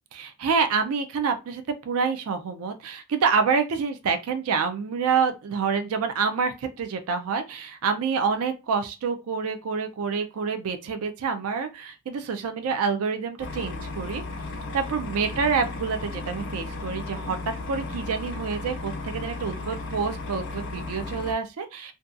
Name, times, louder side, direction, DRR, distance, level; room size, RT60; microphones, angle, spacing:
voice 1, 0.1-14.2 14.7-17.4 17.7-21.9, right 5 dB, 80° right, 0.4 m, -27 dB
sound 1, 13.4-21.3, left 3 dB, 60° left, 0.6 m, -35 dB
2.6 x 2.2 x 2.4 m
head